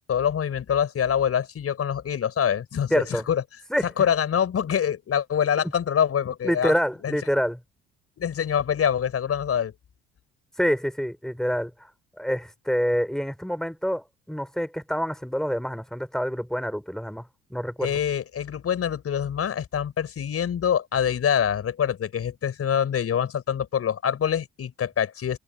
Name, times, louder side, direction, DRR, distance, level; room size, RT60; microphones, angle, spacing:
voice 1, 0.0-3.4 4.0-6.7 7.0-7.2 8.2-9.7 17.8-25.4, left 8 dB, 45° left, 6.3 m, -25 dB
voice 2, 2.9-3.3 3.7-4.1 6.4-7.6 10.6-11.7 12.2-18.0, equal, ahead, 6.0 m, -27 dB
hypercardioid pair, 55°, 32 cm